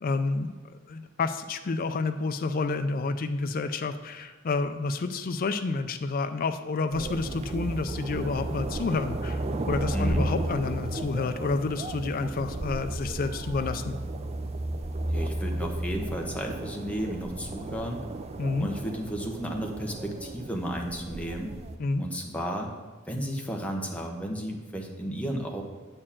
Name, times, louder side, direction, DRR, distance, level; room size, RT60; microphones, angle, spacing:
voice 1, 0.0-14.0 18.4-18.7 21.8-22.0, left 3 dB, 45° left, 8 dB, 0.4 m, -29 dB
sound 1, 6.9-21.8, right 1 dB, 30° right, 0.5 m, -33 dB
voice 2, 9.9-10.2 15.0-18.0 18.6-21.5 22.0-22.7 23.1-25.6, equal, 5° left, 0 dB, 1.0 m, -33 dB
8.6 x 4.5 x 7.3 m, 1.3 s
head